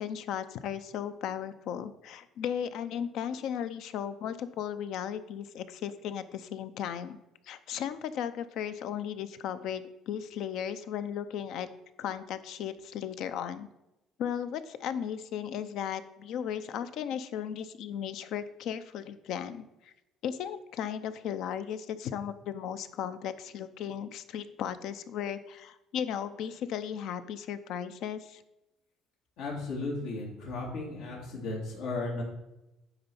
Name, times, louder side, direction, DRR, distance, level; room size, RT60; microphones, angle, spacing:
voice 1, 0.0-7.2 7.5-11.7 12.0-13.7 14.2-19.9 20.2-28.4, left 9 dB, 65° left, 12 dB, 0.6 m, -36 dB
voice 2, 29.4-32.2, left 3 dB, 85° left, -3 dB, 2.5 m, -35 dB
10.0 x 3.9 x 7.0 m, 0.92 s
cardioid pair, 145°, 0 cm